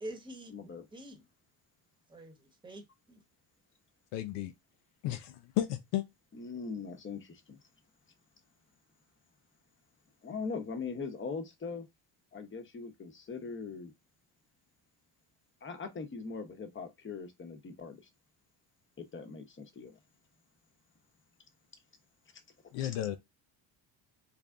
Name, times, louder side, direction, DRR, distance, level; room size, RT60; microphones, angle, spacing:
voice 1, 0.0-0.5 0.9-1.3 2.1-3.2, right 1 dB, 10° right, 1.1 m, -46 dB
voice 2, 0.5-0.8 6.3-7.6 10.2-11.9 12.3-13.9 15.6-18.0 19.0-20.0 22.8-22.9, left 4 dB, 30° left, 0.9 m, -41 dB
voice 3, 4.1-4.5 5.0-6.0 22.7-23.2, left 13 dB, 80° left, 0.6 m, -33 dB
3.4 x 2.3 x 3.6 m
supercardioid pair, 85°, 41 cm